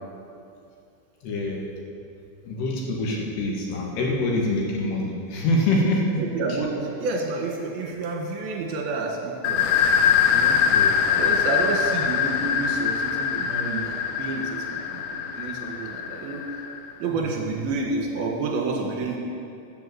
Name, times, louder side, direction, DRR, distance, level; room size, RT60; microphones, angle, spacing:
voice 1, 1.2-1.7 2.4-6.3 10.7-10.9, left 1 dB, 65° left, -2 dB, 3.3 m, -25 dB
voice 2, 6.2-9.9 10.3-10.6 11.0-16.4 17.0-19.2, right 3 dB, 60° right, 0 dB, 3.0 m, -29 dB
sound 1, 9.4-16.9, left 8 dB, 90° left, 2.5 m, -23 dB
13.0 x 8.3 x 7.9 m, 2.6 s
omnidirectional pair, 5.9 m